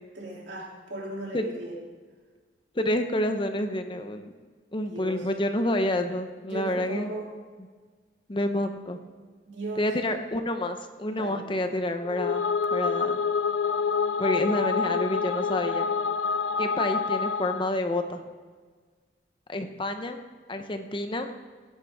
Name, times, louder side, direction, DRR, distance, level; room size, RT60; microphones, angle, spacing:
voice 1, 0.1-1.8 4.8-5.3 6.5-7.3 9.5-9.9 11.1-11.4, right 2 dB, 80° right, -2 dB, 2.9 m, -37 dB
voice 2, 2.7-4.3 4.7-7.1 8.3-9.0 9.8-12.5 12.7-13.2 14.2-16.0 16.6-18.2 19.5-20.2 20.5-21.3, left 1 dB, 30° left, 7 dB, 0.8 m, -28 dB
sound 1, 12.0-17.8, left 5 dB, 90° left, 0.5 m, -27 dB
17.0 x 10.0 x 3.6 m, 1.5 s
head